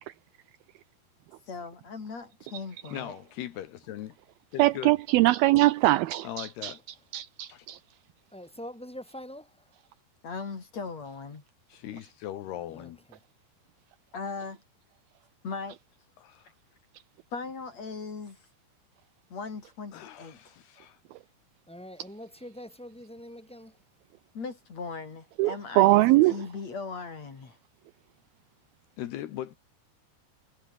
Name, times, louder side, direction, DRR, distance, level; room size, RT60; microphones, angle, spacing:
voice 1, 1.5-3.1 10.2-11.4 14.1-14.6 15.4-15.8 17.3-18.4 19.3-20.6 24.3-27.6, left 4 dB, 40° left, 4.6 m, -38 dB
voice 2, 2.9-4.2 4.5-5.0 6.2-6.8 7.5-7.7 11.7-13.0 16.2-16.5 19.9-21.0 29.0-29.6, left 12 dB, 75° left, 3.3 m, -39 dB
voice 3, 4.6-6.7 7.1-7.8 25.4-26.4, right 18 dB, 85° right, 2.2 m, -22 dB
voice 4, 8.3-9.6 12.7-13.2 21.7-23.8 25.8-26.3, equal, ahead, 7.4 m, -44 dB
omnidirectional pair, 4.9 m